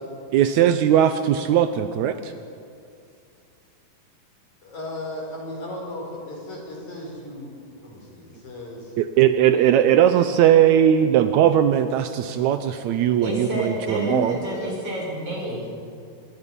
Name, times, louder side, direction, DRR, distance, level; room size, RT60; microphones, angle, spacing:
voice 1, 0.3-2.3 9.0-14.4, right 10 dB, 85° right, 9 dB, 1.6 m, -19 dB
voice 2, 4.6-9.0, left 1 dB, 55° left, 0 dB, 5.6 m, -36 dB
voice 3, 13.2-15.7, right 1 dB, 40° right, -3 dB, 7.0 m, -28 dB
25.5 x 22.0 x 5.5 m, 2.4 s
omnidirectional pair, 4.1 m